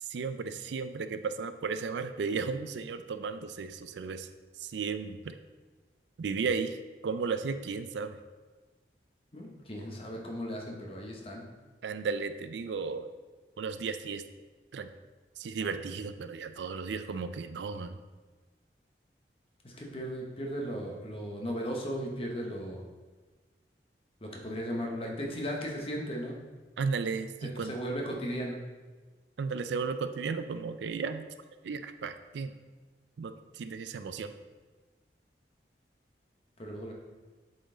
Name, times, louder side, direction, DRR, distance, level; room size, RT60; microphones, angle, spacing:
voice 1, 0.0-4.3 4.6-5.4 6.2-6.8 7.0-8.2 11.8-13.1 13.6-14.2 14.7-14.9 15.4-18.0 26.8-27.8 29.4-31.3 31.6-32.5 33.2-34.3, right 5 dB, 80° right, 10 dB, 0.4 m, -34 dB
voice 2, 9.3-11.4 19.6-22.8 24.2-26.4 27.4-28.6 36.6-36.9, equal, 30° left, 0 dB, 1.0 m, -36 dB
7.8 x 4.2 x 3.8 m, 1.3 s
head